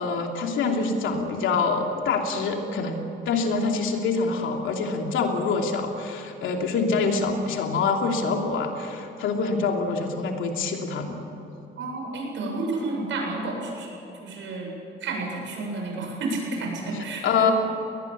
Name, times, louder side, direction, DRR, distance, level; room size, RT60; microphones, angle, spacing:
voice 1, 0.0-2.9 3.3-11.2 17.2-17.5, left 4 dB, 80° left, 2 dB, 3.0 m, -25 dB
voice 2, 11.8-13.9 14.2-14.7 15.0-17.5, right 2 dB, 75° right, 0 dB, 7.9 m, -31 dB
21.0 x 19.5 x 8.8 m, 3.0 s
cardioid pair, 90°, 20 cm